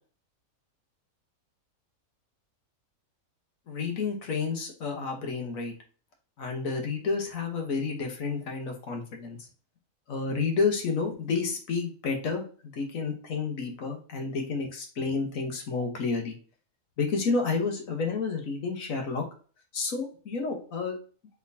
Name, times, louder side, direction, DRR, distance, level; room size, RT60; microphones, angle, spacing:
voice 1, 3.7-5.7 6.4-9.5 10.1-16.4 17.0-19.2 19.7-20.9, left 4 dB, 70° left, 3 dB, 1.5 m, -30 dB
4.4 x 3.7 x 2.7 m, 0.39 s
omnidirectional pair, 1.5 m